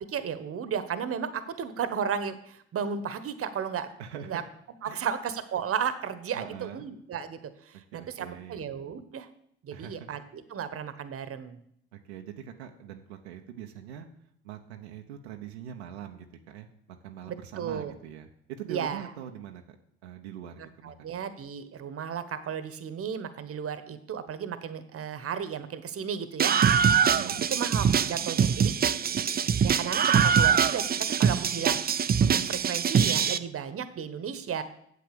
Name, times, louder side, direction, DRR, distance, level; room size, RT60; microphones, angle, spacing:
voice 1, 0.1-3.9 4.3-4.4 4.8-7.4 7.7-9.3 9.6-11.6 17.3-17.9 18.7-19.0 20.8-26.5 27.5-28.7 29.6-31.9 32.2-34.6, right 7 dB, 45° right, 12 dB, 1.2 m, -34 dB
voice 2, 4.0-4.5 4.8-5.1 6.3-6.9 7.7-8.6 9.7-10.1 11.9-14.1 14.4-19.6 20.0-21.1 27.1-27.4, right 9 dB, 90° right, 3 dB, 0.9 m, -43 dB
Screaming, 26.4-33.4, right 7 dB, 30° right, 0.6 m, -23 dB
8.5 x 7.7 x 6.8 m, 0.71 s
hypercardioid pair, 60°, 31 cm